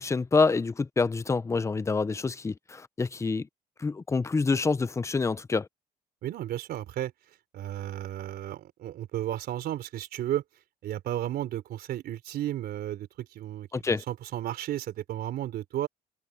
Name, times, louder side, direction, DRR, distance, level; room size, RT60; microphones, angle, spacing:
voice 1, 0.0-3.5 3.8-5.7 13.7-14.0, left 4 dB, 15° left, 0.7 m, -27 dB
voice 2, 6.2-7.1 7.5-10.4 10.8-15.9, right 12 dB, 70° right, 3.9 m, -33 dB
cardioid pair, 110°, 17 cm